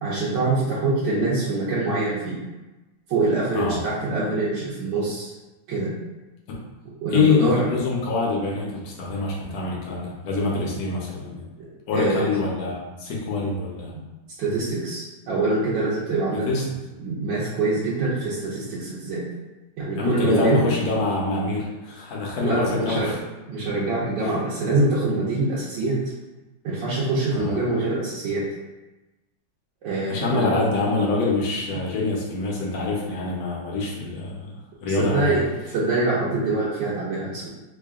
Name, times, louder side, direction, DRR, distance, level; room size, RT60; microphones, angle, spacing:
voice 1, 0.0-2.4 3.1-5.3 5.7-5.9 7.0-7.6 11.9-12.3 14.4-16.5 17.0-19.2 19.8-20.6 22.4-23.1 23.5-26.0 26.6-28.4 29.8-30.4 34.9-37.5, right 2 dB, 70° right, -9 dB, 1.4 m, -24 dB
voice 2, 7.1-11.4 11.9-13.9 16.5-16.6 20.0-23.2 24.2-24.4 27.3-27.6 30.1-34.6 34.8-35.4, left 3 dB, 60° left, -2 dB, 1.1 m, -25 dB
3.7 x 2.2 x 3.5 m, 1.1 s
omnidirectional pair, 2.2 m